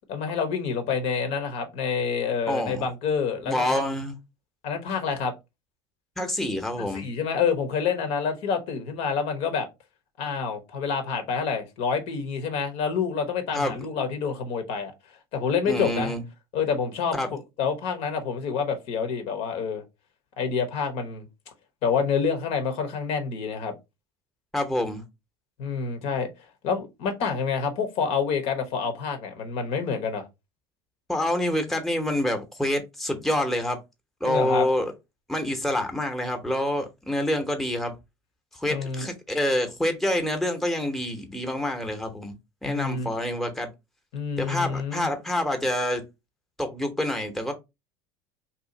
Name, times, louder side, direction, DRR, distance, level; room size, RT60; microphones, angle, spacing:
voice 1, 0.1-3.8 4.6-5.3 6.9-9.7 10.2-14.9 15.3-16.1 16.5-19.8 20.4-21.2 21.8-23.7 25.6-26.3 26.6-30.3 34.2-34.7 38.7-39.1 42.6-43.1 44.1-45.1, left 6 dB, 65° left, 0.9 m, -27 dB
voice 2, 2.5-2.8 3.4-4.2 6.2-7.0 13.5-13.7 15.7-16.2 17.1-17.3 24.5-25.0 31.1-33.8 34.2-34.9 35.3-38.0 38.5-42.3 42.6-43.7 44.4-46.0 46.6-47.5, left 1 dB, ahead, 0.8 m, -27 dB
2.7 x 2.4 x 3.8 m
supercardioid pair, 95°, 12 cm